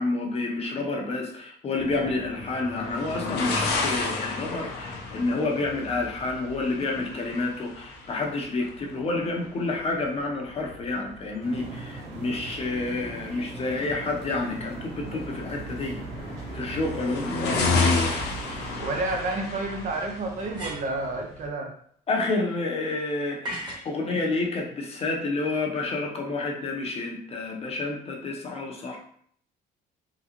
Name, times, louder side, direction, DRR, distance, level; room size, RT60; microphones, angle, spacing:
voice 1, 0.0-16.0 16.5-18.0 22.1-29.0, left 3 dB, 35° left, 0 dB, 0.8 m, -29 dB
sound 1, 1.8-21.5, left 3 dB, 75° left, 0.8 m, -32 dB
sound 2, 11.4-18.8, right 3 dB, 80° right, 1.0 m, -40 dB
voice 2, 18.8-21.7, right 2 dB, 50° right, 3 dB, 0.6 m, -30 dB
sound 3, 20.4-21.1 23.4-23.9, equal, 25° right, 1.3 m, -36 dB
3.7 x 2.3 x 2.9 m, 0.62 s
cardioid pair, 110°, 17 cm